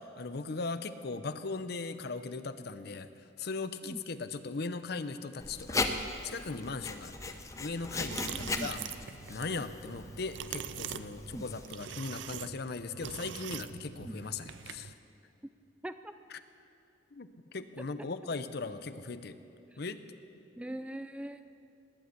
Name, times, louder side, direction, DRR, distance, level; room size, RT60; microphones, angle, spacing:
voice 1, 0.0-3.1 3.4-8.8 9.3-14.9 16.3-16.4 17.1-19.4 19.8-20.0, left 3 dB, 55° left, 11 dB, 0.6 m, -39 dB
Writing, 5.4-11.7, left 3 dB, 15° left, 0.7 m, -38 dB
sound 1, 7.9-14.9, right 8 dB, 75° right, 0.5 m, -43 dB
voice 2, 8.1-8.9 9.6-9.7 11.3-11.5 14.0-14.2 15.8-16.1 18.0-18.1 20.6-21.4, right 1 dB, 5° right, 10 dB, 0.3 m, -42 dB
20.0 x 7.8 x 8.3 m, 2.7 s
head